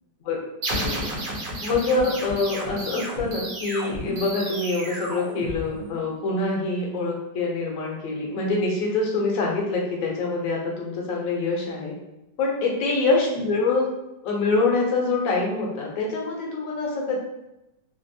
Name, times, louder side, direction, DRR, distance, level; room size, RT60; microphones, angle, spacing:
sound 1, 0.6-6.1, right 1 dB, 65° right, 1.4 m, -32 dB
voice 1, 0.7-1.1 1.6-11.9 12.4-13.9 14.2-17.2, left 3 dB, 60° left, -1 dB, 1.0 m, -25 dB
3.4 x 2.5 x 2.6 m, 0.93 s
omnidirectional pair, 2.0 m